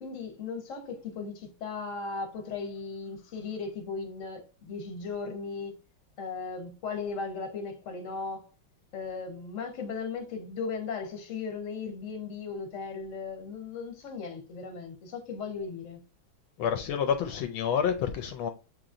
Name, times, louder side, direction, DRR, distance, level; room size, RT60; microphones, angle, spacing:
voice 1, 0.0-5.8 6.2-8.5 8.9-16.0, left 4 dB, 50° left, 1.0 m, -37 dB
voice 2, 16.6-18.5, left 7 dB, 75° left, 1.3 m, -28 dB
7.1 x 3.0 x 2.5 m
omnidirectional pair, 2.4 m